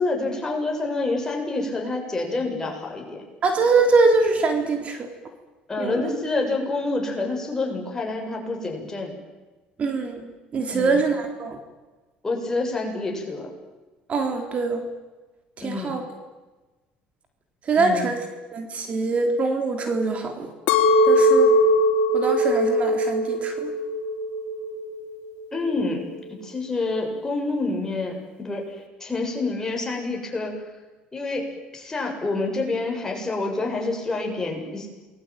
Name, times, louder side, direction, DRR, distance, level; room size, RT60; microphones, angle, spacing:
voice 1, 0.0-3.2 5.7-9.2 10.7-11.0 12.2-13.5 15.6-15.9 17.7-18.1 25.5-30.6 31.1-31.5 31.7-34.9, left 3 dB, 15° left, 1 dB, 7.7 m, -27 dB
voice 2, 3.4-5.1 5.8-6.1 9.8-11.6 14.1-14.8 15.6-16.0 17.7-18.2 18.5-20.5 21.0-21.6 22.1-23.7, right 3 dB, 40° right, 5 dB, 3.7 m, -23 dB
Chink clink, 20.7-25.0 25.4-26.0, equal, 80° left, 3.2 m, -20 dB
27.5 x 22.0 x 9.3 m, 1.2 s
cardioid pair, 105°, 3 cm